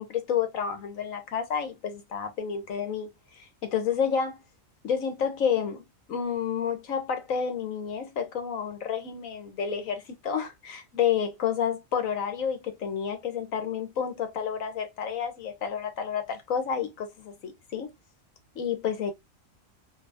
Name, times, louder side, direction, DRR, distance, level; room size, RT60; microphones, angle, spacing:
voice 1, 0.0-4.4 4.8-5.8 6.1-17.9 18.5-19.1, left 7 dB, 85° left, 1.4 m, -30 dB
3.4 x 3.0 x 2.5 m
omnidirectional pair, 1.4 m